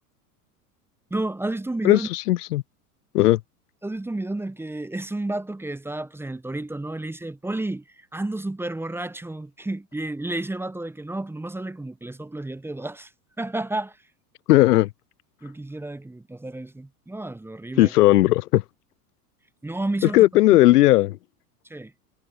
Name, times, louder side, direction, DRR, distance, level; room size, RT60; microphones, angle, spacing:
voice 1, 1.1-2.1 3.8-13.1 13.4-14.0 15.4-17.9 19.6-20.2 21.7-21.9, right 2 dB, 5° right, 0.9 m, -31 dB
voice 2, 1.8-2.6 3.1-3.4 14.5-14.9 17.8-18.6 20.1-21.2, left 16 dB, 80° left, 0.5 m, -17 dB
hypercardioid pair, 90°, 46 cm